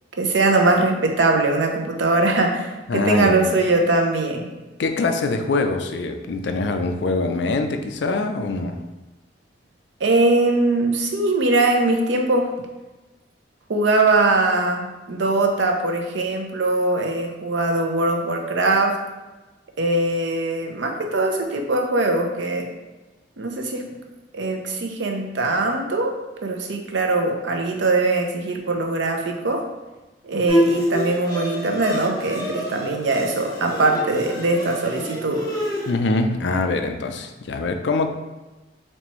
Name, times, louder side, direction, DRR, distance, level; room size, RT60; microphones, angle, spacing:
voice 1, 0.2-4.5 10.0-12.5 13.7-19.0 19.8-22.7 23.4-23.9 24.3-26.2 26.4-29.7 30.2-35.5, right 2 dB, 85° right, 2 dB, 0.6 m, -21 dB
voice 2, 2.9-3.4 4.8-8.8 35.9-38.1, left 3 dB, 75° left, 6 dB, 0.4 m, -23 dB
Bowed string instrument, 30.5-35.9, equal, 20° left, 0.8 m, -26 dB
4.2 x 3.3 x 3.0 m, 1.1 s
head